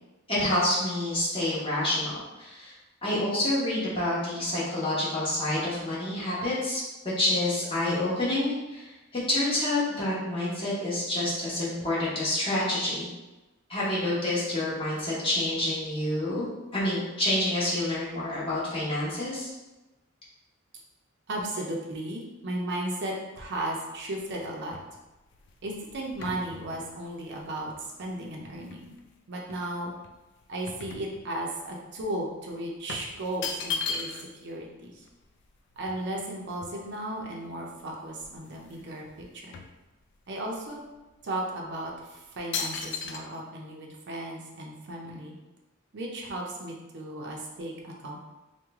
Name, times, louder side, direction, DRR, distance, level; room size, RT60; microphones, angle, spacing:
voice 1, 0.3-2.7 3.0-6.8 7.2-8.9 9.3-13.1 13.7-19.5, left 1 dB, 25° left, -8 dB, 1.1 m, -28 dB
voice 2, 21.3-24.7 25.6-28.9 29.3-29.9 30.5-35.1 35.8-39.6 40.3-40.8 41.2-45.4 45.9-48.2, right 1 dB, 60° right, -1 dB, 0.5 m, -35 dB
sound 1, 23.9-29.1 29.5-31.7 32.0-32.2 32.9-34.5 34.8-34.9 35.1-37.2 37.8-37.9 38.1-38.9 39.2-40.4 41.0-41.1 41.7-42.0 42.5-43.2, left 5 dB, 60° left, 0.3 m, -38 dB
3.1 x 2.1 x 3.5 m, 1.1 s
head